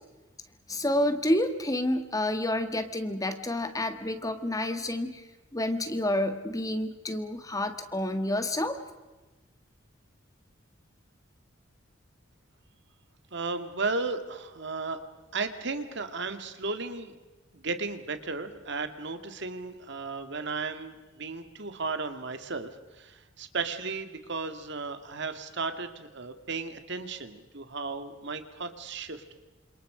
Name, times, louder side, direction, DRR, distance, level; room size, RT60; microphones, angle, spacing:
voice 1, 0.7-5.2 5.5-8.8, left 1 dB, 15° left, 8 dB, 1.7 m, -29 dB
voice 2, 13.3-15.0 15.3-17.1 17.5-29.2, right 4 dB, 60° right, 8 dB, 2.1 m, -35 dB
29.0 x 27.0 x 5.0 m, 1.2 s
head